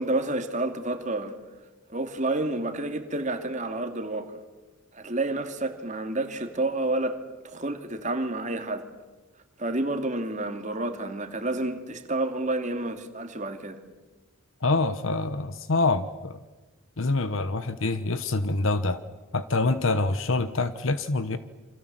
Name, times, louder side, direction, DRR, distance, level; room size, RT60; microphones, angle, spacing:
voice 1, 0.0-1.3 1.9-4.4 4.9-7.2 7.4-8.8 9.6-13.8, right 2 dB, 35° right, 2.4 m, -29 dB
voice 2, 14.6-16.4 17.0-19.0 19.3-21.4, left 3 dB, 65° left, 1.1 m, -26 dB
28.5 x 26.0 x 7.6 m
head